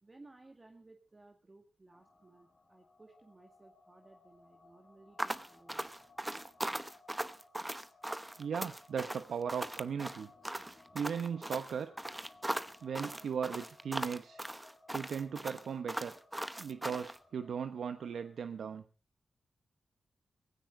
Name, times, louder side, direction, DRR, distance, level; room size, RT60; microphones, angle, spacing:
voice 1, 0.0-5.9, right 2 dB, 30° right, 4 dB, 2.0 m, -59 dB
sound 1, 1.9-18.3, left 2 dB, 30° left, 2.5 m, -62 dB
sound 2, 5.2-17.2, right 1 dB, 10° right, 0.9 m, -39 dB
voice 2, 8.4-10.3 10.9-11.9 12.8-14.4 14.9-16.1 16.6-18.8, right 7 dB, 80° right, 10 dB, 0.9 m, -37 dB
18.0 x 16.0 x 3.8 m, 0.35 s
cardioid pair, 80°, 0 cm